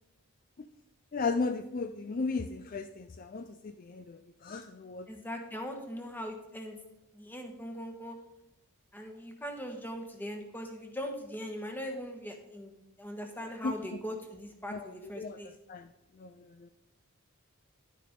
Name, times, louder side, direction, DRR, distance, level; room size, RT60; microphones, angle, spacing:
voice 1, 1.1-5.1 13.6-13.8 14.7-15.9 16.2-16.7, left 4 dB, 40° left, 9 dB, 0.4 m, -36 dB
voice 2, 5.1-6.8 7.1-8.2 8.9-12.7 13.0-15.5, equal, 10° left, 3 dB, 1.3 m, -40 dB
11.0 x 9.4 x 3.7 m, 0.91 s
head